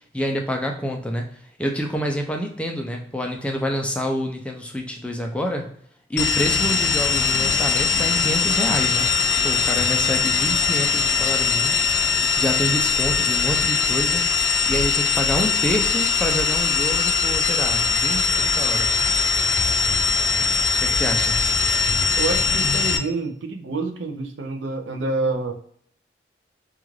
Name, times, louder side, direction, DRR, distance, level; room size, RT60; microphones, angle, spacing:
voice 1, 0.1-5.7 6.1-9.1 9.4-11.8 12.4-14.2 14.7-19.0 20.8-21.4, equal, 5° left, 2 dB, 0.4 m, -27 dB
sound 1, 6.2-23.0, left 5 dB, 85° left, 0.3 m, -21 dB
voice 2, 22.2-25.5, right 3 dB, 85° right, 5 dB, 0.5 m, -27 dB
2.4 x 2.3 x 3.1 m, 0.63 s
head